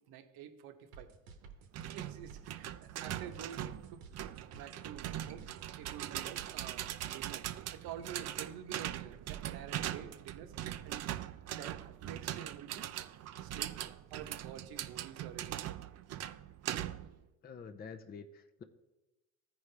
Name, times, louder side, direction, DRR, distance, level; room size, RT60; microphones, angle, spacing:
voice 1, 0.1-1.1 1.9-4.0 4.5-5.5 5.8-11.2 11.5-12.9 13.4-13.8 14.1-15.8, right 9 dB, 60° right, 8 dB, 1.0 m, -49 dB
sound 1, 0.9-6.0, right 6 dB, 85° right, 1.2 m, -54 dB
sound 2, 1.7-17.2, right 12 dB, 40° right, 0.5 m, -41 dB
voice 2, 17.4-18.6, left 5 dB, 25° left, 8 dB, 0.6 m, -48 dB
14.5 x 4.9 x 3.3 m, 1.1 s
supercardioid pair, 85°, 42 cm